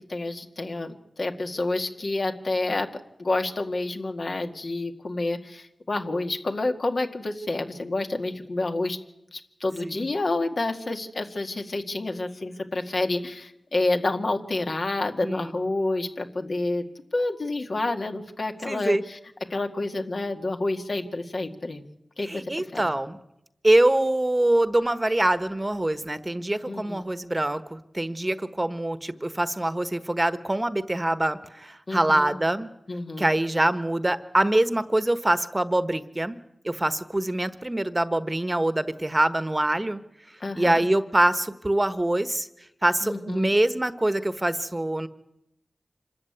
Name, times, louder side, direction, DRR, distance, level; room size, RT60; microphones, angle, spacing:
voice 1, 0.1-2.9 3.2-9.0 9.3-16.9 17.1-19.2 19.5-21.8 22.2-22.8 26.7-27.1 31.9-32.3 32.9-33.3 40.4-40.9 43.0-43.5, left 2 dB, 65° left, 4 dB, 1.9 m, -29 dB
voice 2, 15.2-15.6 18.7-19.0 22.2-23.2 23.6-32.7 33.2-36.4 36.6-40.0 40.5-42.5 42.8-45.1, right 1 dB, 25° right, 12 dB, 1.2 m, -24 dB
26.0 x 13.5 x 9.5 m, 0.85 s
cardioid pair, 45°, 0 cm